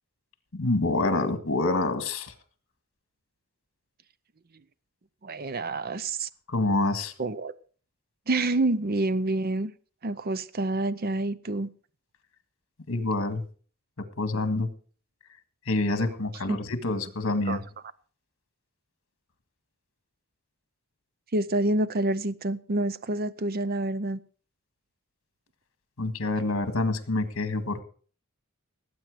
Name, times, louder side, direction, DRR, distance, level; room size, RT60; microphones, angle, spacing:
voice 1, 0.5-2.3 6.5-7.1 12.9-13.4 14.0-14.7 15.7-17.6 26.0-27.8, left 2 dB, 60° left, 1.8 m, -27 dB
voice 2, 5.2-6.3 7.2-7.6 8.3-9.7 10.0-11.7 16.5-16.6 17.5-17.6 21.3-24.2, right 2 dB, 45° right, 0.6 m, -27 dB
18.0 x 8.7 x 4.9 m
head